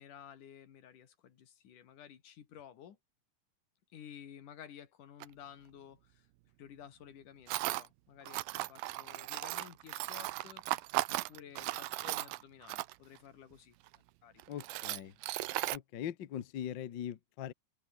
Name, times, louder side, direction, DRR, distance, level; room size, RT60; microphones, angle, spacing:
voice 1, 0.0-3.0 3.9-6.3 6.6-10.6 11.1-15.0, left 9 dB, 65° left, 3.5 m, -54 dB
Tools, 5.2-5.3 7.5-7.9 8.3-13.2 13.9-14.0 14.4-15.8, right 18 dB, 80° right, 2.5 m, -36 dB
voice 2, 14.5-15.1 15.7-17.5, left 10 dB, 85° left, 1.0 m, -41 dB
open air
omnidirectional pair, 4.1 m